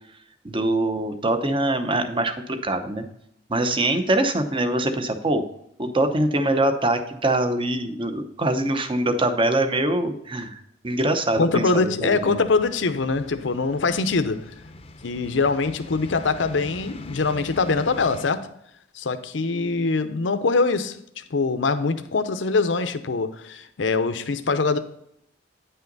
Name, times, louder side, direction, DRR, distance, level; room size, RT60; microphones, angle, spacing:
voice 1, 0.4-3.0 3.5-5.4 5.8-12.4, right 1 dB, 30° right, 8 dB, 0.8 m, -23 dB
voice 2, 11.4-14.4 15.0-18.5 18.9-24.8, left 4 dB, 80° left, 10 dB, 0.7 m, -23 dB
sound 1, 12.1-18.2, left 1 dB, 30° left, 0.6 m, -42 dB
9.6 x 5.7 x 3.9 m, 0.75 s
head